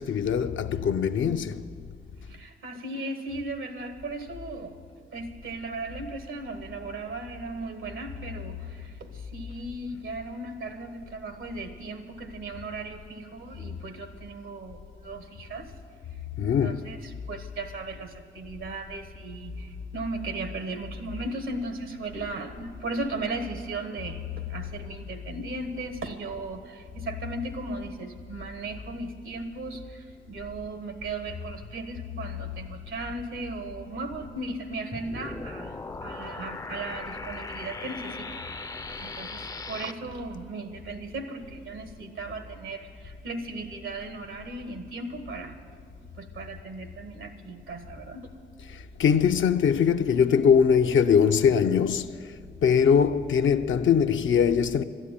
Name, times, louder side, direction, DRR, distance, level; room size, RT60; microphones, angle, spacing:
voice 1, 0.0-1.6 16.4-16.8 49.0-52.1 52.6-54.8, left 7 dB, 75° left, 0.6 m, -22 dB
voice 2, 2.2-4.8 5.1-15.7 16.4-38.4 39.0-45.6 46.1-48.3, right 2 dB, 90° right, 1.4 m, -37 dB
sound 1, 34.9-39.9, left 3 dB, 20° left, 0.4 m, -38 dB
12.5 x 9.9 x 8.9 m
cardioid pair, 60°, 20 cm